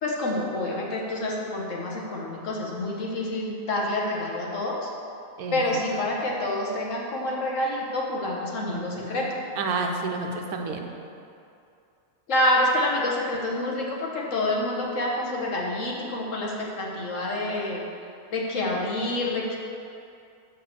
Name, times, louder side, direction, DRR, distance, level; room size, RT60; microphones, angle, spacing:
voice 1, 0.0-4.8 5.5-9.4 12.3-17.8 18.3-19.6, left 1 dB, 60° left, -2 dB, 1.5 m, -27 dB
voice 2, 5.4-5.8 8.7-9.1 9.6-10.9, right 3 dB, 85° right, 3 dB, 1.3 m, -30 dB
6.9 x 5.5 x 6.4 m, 2.5 s
omnidirectional pair, 1.5 m